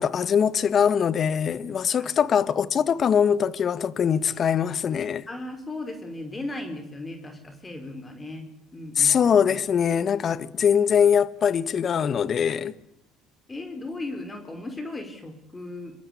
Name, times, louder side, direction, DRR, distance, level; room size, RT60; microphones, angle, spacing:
voice 1, 0.0-5.2 9.0-12.7, left 7 dB, 45° left, 1.6 m, -22 dB
voice 2, 5.3-8.4 8.7-9.2 13.5-15.9, left 2 dB, 20° left, 5.2 m, -36 dB
26.5 x 23.5 x 8.6 m
supercardioid pair, 80°, 0 cm